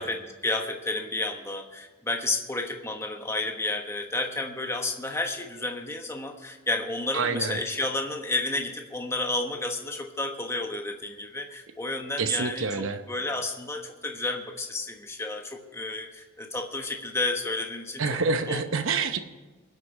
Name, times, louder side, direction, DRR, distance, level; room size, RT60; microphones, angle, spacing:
voice 1, 0.0-18.0 18.5-18.6, left 2 dB, 10° left, 3 dB, 1.1 m, -31 dB
voice 2, 7.1-7.6 12.2-13.0 18.0-19.2, right 4 dB, 65° right, 8 dB, 0.8 m, -27 dB
24.0 x 8.1 x 4.7 m, 1.3 s
head